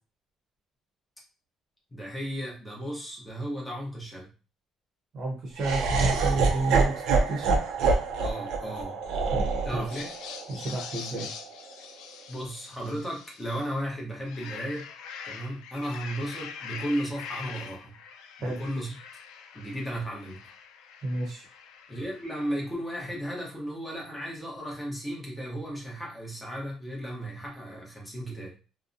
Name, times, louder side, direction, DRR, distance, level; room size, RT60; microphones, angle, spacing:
voice 1, 1.9-4.3 8.2-9.0 9.6-10.1 12.3-14.9 15.2-18.0 18.4-19.0 19.5-20.4 21.9-28.5, equal, 5° left, -3 dB, 0.7 m, -35 dB
voice 2, 5.1-7.6 9.3-9.4 9.7-9.9 10.5-11.3 18.4-18.6 21.0-21.5, right 2 dB, 35° right, -3 dB, 0.8 m, -31 dB
Laughter, 5.6-11.7, right 4 dB, 70° right, 0.5 m, -27 dB
sound 1, 9.8-13.7 14.1-22.8, left 7 dB, 90° left, 0.3 m, -44 dB
2.7 x 2.0 x 2.5 m, 0.33 s
cardioid pair, 180°, 0 cm